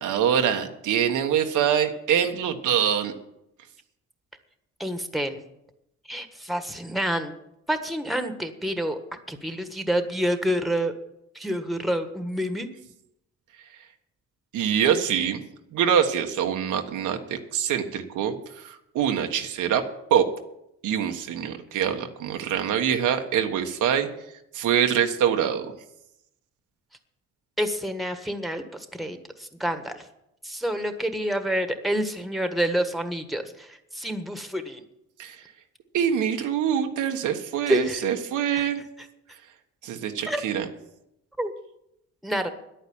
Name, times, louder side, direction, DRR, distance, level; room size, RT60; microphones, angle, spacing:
voice 1, 0.0-3.1 14.5-15.4 15.7-19.8 20.1-20.3 20.8-24.1 24.5-25.7 35.2-35.4 35.9-38.8 39.8-40.7, right 8 dB, 80° right, 5 dB, 1.4 m, -24 dB
voice 2, 4.8-5.4 6.1-7.3 7.7-9.0 9.3-10.9 11.3-12.7 27.6-28.6 29.0-30.0 30.4-34.8 37.7-38.1 38.5-38.6 40.3-40.4 41.4-41.5 42.2-42.5, equal, ahead, 8 dB, 1.5 m, -28 dB
10.5 x 9.2 x 8.7 m, 0.84 s
cardioid pair, 90°, 30 cm